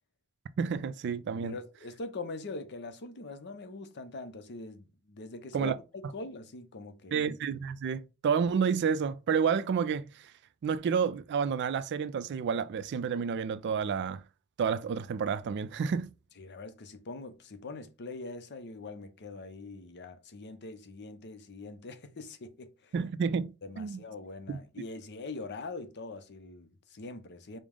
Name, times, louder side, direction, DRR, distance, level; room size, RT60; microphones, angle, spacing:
voice 1, 0.6-1.6 5.5-5.8 7.1-10.3 10.6-14.2 14.6-16.1 22.9-23.5 23.8-24.0 24.5-24.6, right 6 dB, 55° right, 0.3 m, -30 dB
voice 2, 1.4-7.2 16.4-22.9 23.6-27.6, left 3 dB, 50° left, 0.6 m, -43 dB
5.0 x 2.0 x 3.6 m
head